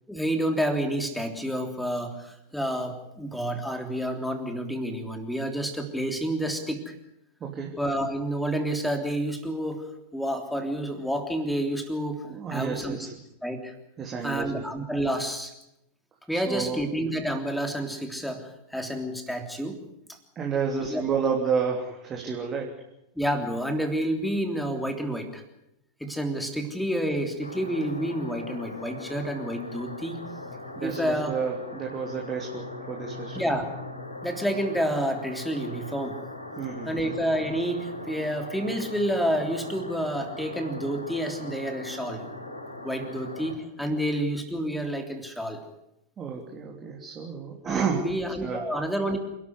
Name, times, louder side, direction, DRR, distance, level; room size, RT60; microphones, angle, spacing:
voice 1, 0.1-6.9 7.8-9.9 10.1-12.2 12.5-13.0 13.4-13.7 14.2-15.5 16.3-19.8 20.1-20.2 20.7-21.0 23.2-25.4 26.0-30.2 30.8-31.4 33.3-33.7 34.2-36.2 36.9-42.2 42.8-45.6 47.7-49.2, equal, ahead, 6 dB, 3.3 m, -29 dB
voice 2, 7.4-7.7 12.2-13.1 14.0-14.6 16.3-16.8 20.3-22.7 30.8-33.5 36.6-37.1 43.9-44.0 46.2-48.1 48.4-48.6, right 6 dB, 25° right, 0 dB, 3.2 m, -30 dB
sound 1, 27.4-43.5, left 2 dB, 85° left, 7.1 m, -40 dB
27.5 x 12.5 x 9.7 m, 0.82 s
figure-of-eight pair, 90°, 0 cm